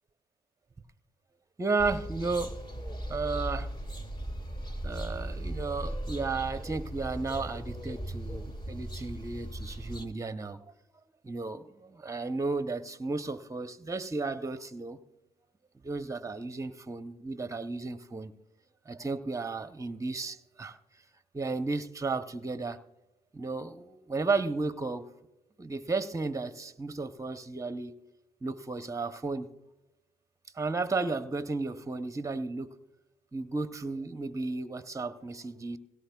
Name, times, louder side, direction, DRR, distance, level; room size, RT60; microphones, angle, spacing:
voice 1, 1.6-2.5 3.1-3.7 4.8-10.6 11.2-15.0 15.8-18.3 18.9-20.8 21.3-22.8 23.3-25.0 25.6-28.0 28.4-29.5 30.5-32.7 33.3-35.8, right 3 dB, 15° right, 0.8 m, -33 dB
sound 1, 1.8-10.1, right 1 dB, 25° left, 1.9 m, -38 dB
17.0 x 16.5 x 2.3 m
hypercardioid pair, 50°, 20 cm